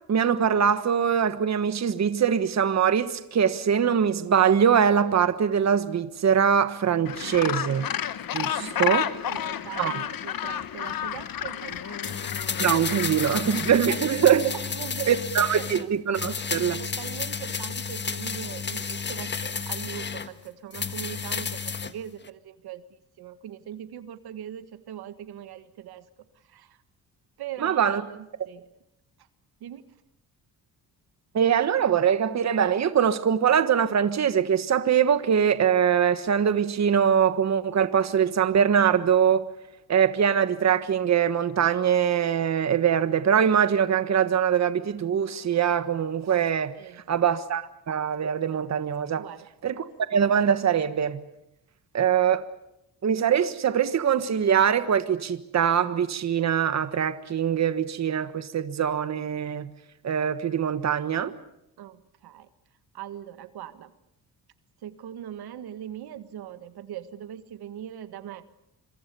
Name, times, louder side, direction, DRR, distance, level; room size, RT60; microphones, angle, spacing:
voice 1, 0.1-7.9 8.3-9.1 9.8-10.0 12.6-14.5 15.1-16.8 27.6-28.0 31.3-39.4 39.9-46.7 47.1-49.3 49.6-51.2 51.9-52.5 53.0-59.7 60.0-61.3, right 8 dB, 45° right, 1.4 m, -23 dB
Gull seagull, 7.1-13.8, left 10 dB, 65° left, 1.4 m, -31 dB
voice 2, 8.6-12.2 12.7-12.8 13.9-15.9 16.5-26.1 26.4-26.8 27.4-28.6 29.6-29.8 46.8-47.2 49.2-49.5 61.8-62.5 62.9-63.9 64.8-68.4, right 10 dB, 85° right, 1.7 m, -41 dB
sound 1, 12.0-15.9 16.1-20.3 20.7-21.9 22.2-22.3, left 5 dB, 30° left, 1.4 m, -32 dB
26.5 x 23.5 x 6.9 m
cardioid pair, 120°, 37 cm